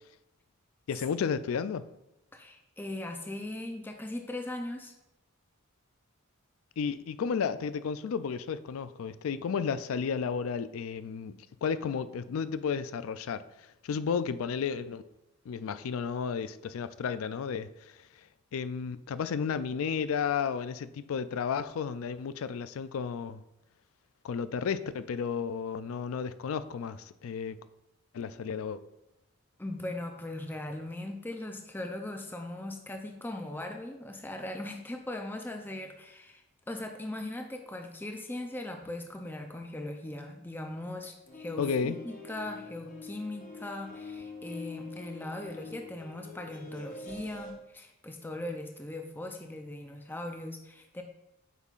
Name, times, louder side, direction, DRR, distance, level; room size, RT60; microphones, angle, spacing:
voice 1, 0.9-1.8 6.8-11.3 11.6-13.4 13.8-15.0 15.5-17.7 18.5-23.4 24.2-27.6 28.1-28.8 41.6-42.0, left 6 dB, 80° left, 0.4 m, -32 dB
voice 2, 2.3-4.9 29.6-51.0, left 1 dB, 10° left, 0.5 m, -39 dB
sound 1, 41.3-47.5, left 3 dB, 40° left, 0.9 m, -45 dB
8.1 x 5.5 x 2.4 m
head